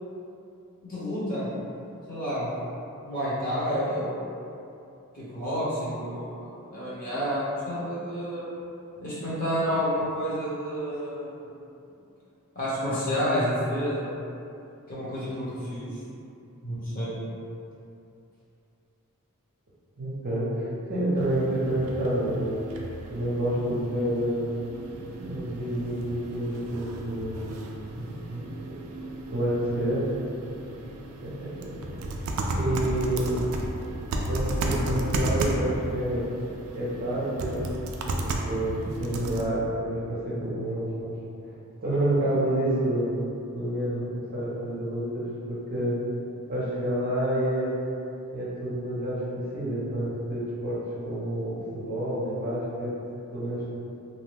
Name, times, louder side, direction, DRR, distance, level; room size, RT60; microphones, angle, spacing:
voice 1, 0.9-1.5 2.1-2.5 3.0-4.3 5.1-8.4 9.0-11.3 12.5-14.2 14.9-15.9 16.6-17.1, equal, 40° left, -10 dB, 1.0 m, -29 dB
voice 2, 20.0-22.6 23.1-24.5 25.2-28.5 29.3-30.1 31.2-32.1 32.5-33.4 34.2-36.2 36.7-37.7 38.1-41.1 41.8-43.1 43.5-46.0 46.5-47.7 48.3-52.9 53.3-53.6, right 1 dB, 40° right, -8 dB, 0.7 m, -29 dB
sound 1, 21.2-39.4, right 1 dB, 65° right, 0.3 m, -34 dB
2.7 x 2.1 x 3.2 m, 2.6 s
head